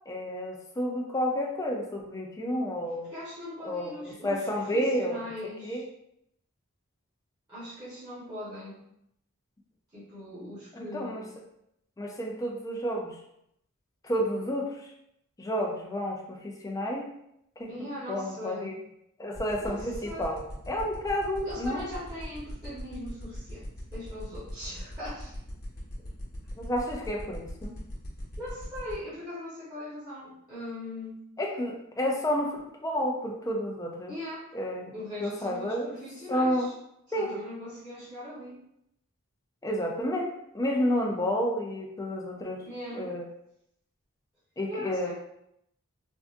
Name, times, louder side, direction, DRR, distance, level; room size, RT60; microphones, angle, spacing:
voice 1, 0.1-3.1 3.6-5.3 5.6-5.8 10.7-11.2 12.0-13.2 14.0-14.9 15.4-17.1 17.6-17.7 18.1-18.8 19.2-21.9 26.6-27.7 31.4-34.1 34.5-36.0 36.3-36.7 37.1-37.3 39.6-43.3 44.6-45.1, equal, 15° left, -1 dB, 0.4 m, -30 dB
voice 2, 3.1-4.4 4.7-5.8 7.5-8.8 9.9-11.2 17.7-18.7 19.6-20.3 21.4-25.3 28.4-31.2 34.1-34.5 34.9-36.7 37.1-38.6 42.6-43.1 44.7-45.1, left 1 dB, 15° right, -14 dB, 1.1 m, -40 dB
sound 1, 19.3-28.9, left 1 dB, 45° left, 1.1 m, -41 dB
3.5 x 2.4 x 2.5 m, 0.78 s
head